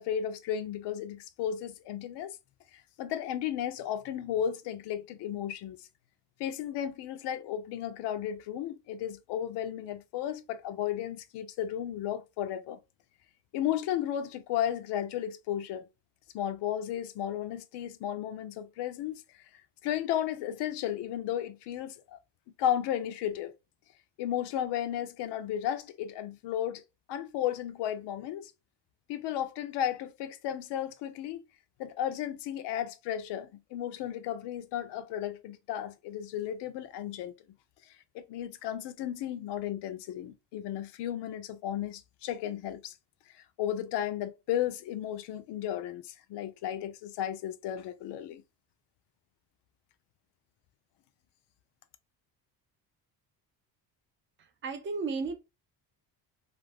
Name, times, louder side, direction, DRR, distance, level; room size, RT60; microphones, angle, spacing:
voice 1, 0.0-2.4 3.0-5.8 6.4-12.8 13.5-15.9 16.3-19.2 19.8-22.2 22.6-23.5 24.2-26.8 27.1-28.5 29.1-31.4 31.8-37.3 38.1-42.9 43.6-48.4, left 10 dB, 75° left, 0.5 m, -34 dB
voice 2, 54.4-55.4, right 4 dB, 30° right, 0.4 m, -34 dB
2.5 x 2.5 x 3.3 m
cardioid pair, 165°, 41 cm